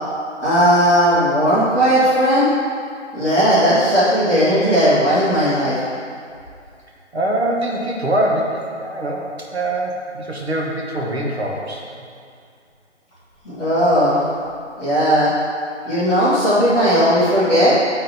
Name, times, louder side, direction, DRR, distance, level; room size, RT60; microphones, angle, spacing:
voice 1, 0.4-2.5 3.1-5.8 13.4-14.2 14.8-15.3 15.8-17.7, equal, 5° left, -20 dB, 0.8 m, -16 dB
voice 2, 7.1-11.8, right 1 dB, 60° right, -1 dB, 1.4 m, -23 dB
8.6 x 3.9 x 4.3 m, 2.3 s
figure-of-eight pair, 150°, 36 cm